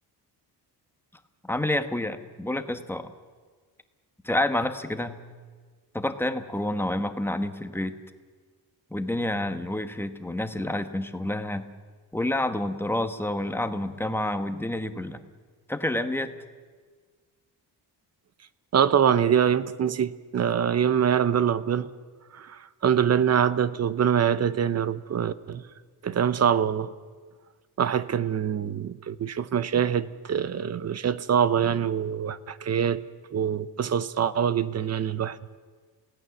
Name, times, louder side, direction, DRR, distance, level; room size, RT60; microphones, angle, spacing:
voice 1, 1.4-3.1 4.2-5.2 5.9-8.0 8.9-11.7 12.1-15.2 15.7-16.3, left 1 dB, 5° left, 1.0 m, -28 dB
voice 2, 18.7-21.9 22.3-25.6 26.0-26.9 27.8-33.0 33.3-35.4, right 8 dB, 40° right, 0.7 m, -24 dB
29.0 x 17.0 x 7.1 m
wide cardioid pair, 160°, 40 cm